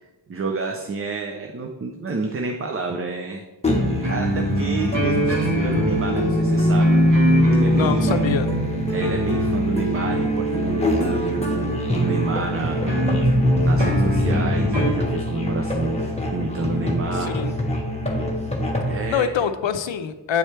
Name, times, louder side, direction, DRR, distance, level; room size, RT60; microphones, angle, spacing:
voice 1, 0.3-3.4 4.0-7.0 7.5-8.2 8.9-12.9 13.2-17.3 18.9-19.3, right 3 dB, 30° right, 3 dB, 0.5 m, -29 dB
Musical instrument, 3.6-19.1, left 1 dB, 15° left, 1.2 m, -27 dB
sound 1, 3.7-14.9, equal, 70° right, 1.5 m, -21 dB
voice 2, 7.7-8.5 17.3-17.5 19.1-20.4, left 8 dB, 75° left, 10 dB, 0.6 m, -24 dB
9.2 x 4.3 x 3.3 m, 1.1 s
wide cardioid pair, 85°, 45 cm